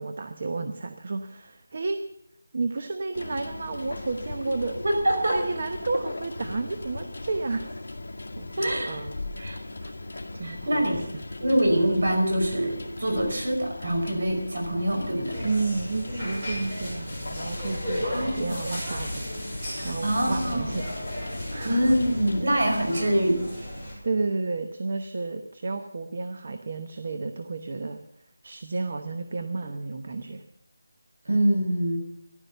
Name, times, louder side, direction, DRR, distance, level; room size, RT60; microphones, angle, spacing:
voice 1, 0.0-2.0 2.5-4.8 5.3-7.8 8.4-8.5 8.9-9.1 9.4-11.1 11.5-11.6 15.4-19.2 19.8-20.9 21.5-21.9 24.0-28.0 28.4-30.4, right 3 dB, 35° right, 8 dB, 0.9 m, -32 dB
sound 1, 3.1-22.4, left 2 dB, 55° left, 2.3 m, -38 dB
voice 2, 4.8-5.4 8.6-9.0 9.4-9.6 10.4-11.1 11.4-15.4 18.0-18.6 19.7-20.7 21.6-23.4 31.3-32.0, right 1 dB, 50° right, 3 dB, 5.2 m, -25 dB
sound 2, 15.3-23.9, equal, 15° right, 6.3 m, -35 dB
14.5 x 12.0 x 6.8 m, 0.75 s
figure-of-eight pair, 180°, 0 cm